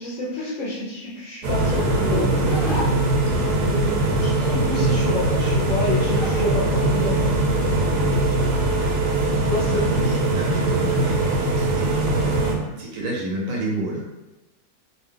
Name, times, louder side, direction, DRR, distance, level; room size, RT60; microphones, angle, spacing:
voice 1, 0.0-2.6 3.6-7.3 9.4-10.0, left 2 dB, 65° left, -4 dB, 0.8 m, -29 dB
sound 1, 1.4-12.5, right 2 dB, 90° right, 1.2 m, -21 dB
Zipper (clothing), 1.6-3.6 4.8-6.4 6.8-9.2, equal, 20° left, 0.7 m, -32 dB
voice 2, 4.0-4.4 9.7-12.1 12.8-14.0, right 1 dB, 65° right, -2 dB, 1.0 m, -30 dB
2.7 x 2.3 x 3.6 m, 1.0 s
omnidirectional pair, 1.7 m